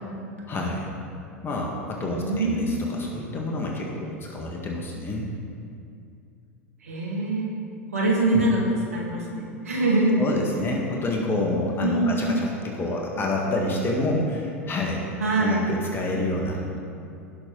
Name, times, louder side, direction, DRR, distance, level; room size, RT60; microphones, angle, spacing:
voice 1, 0.5-0.9 1.4-5.3 8.3-8.4 10.2-15.0 15.4-16.8, left 2 dB, 30° left, -1 dB, 1.7 m, -28 dB
voice 2, 2.0-2.8 6.8-7.5 7.9-8.6 8.9-10.3 11.8-12.3 15.2-15.7, right 2 dB, 85° right, -2 dB, 2.1 m, -24 dB
17.0 x 6.2 x 3.9 m, 2.5 s
hypercardioid pair, 90°, 8 cm